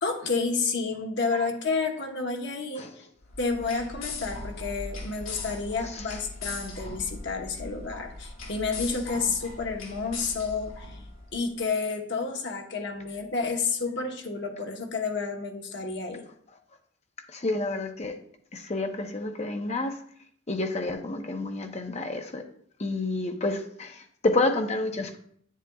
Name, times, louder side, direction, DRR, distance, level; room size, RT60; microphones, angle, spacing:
voice 1, 0.0-3.1 3.4-11.0 11.3-16.2, left 4 dB, 55° left, 3 dB, 1.0 m, -30 dB
sound 1, 3.2-11.4, left 3 dB, 75° left, 2.1 m, -39 dB
voice 2, 17.3-18.1 18.5-20.0 20.5-22.4 22.8-25.2, left 2 dB, 30° left, 5 dB, 0.7 m, -29 dB
8.9 x 7.5 x 2.3 m, 0.63 s
head